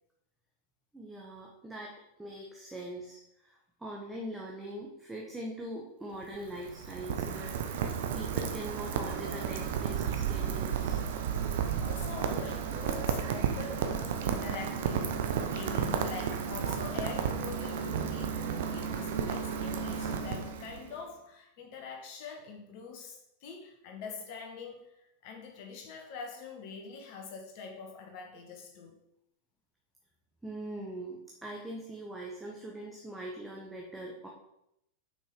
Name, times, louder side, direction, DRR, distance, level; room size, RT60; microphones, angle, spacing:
voice 1, 0.9-11.0 30.4-34.3, right 1 dB, 10° right, -2 dB, 1.2 m, -42 dB
Rain, 6.1-21.0, right 7 dB, 55° right, 0.8 m, -33 dB
voice 2, 11.8-18.4 18.6-29.0, left 5 dB, 45° left, 2 dB, 1.8 m, -44 dB
6.4 x 5.5 x 5.3 m, 0.81 s
figure-of-eight pair, 90°, 0 cm